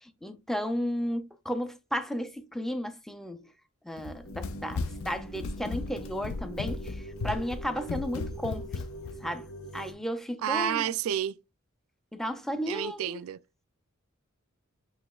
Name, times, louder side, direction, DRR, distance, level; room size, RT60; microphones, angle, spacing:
voice 1, 0.0-3.4 3.8-8.7 9.2-9.5 9.7-10.9 12.1-13.2, equal, ahead, 0.4 m, -34 dB
Run, 4.0-9.2, left 4 dB, 70° left, 0.4 m, -36 dB
sound 1, 4.2-9.9, right 1 dB, 90° left, 1.0 m, -43 dB
voice 2, 10.4-11.4 12.7-13.4, right 9 dB, 75° right, 0.3 m, -30 dB
7.7 x 3.0 x 2.3 m
head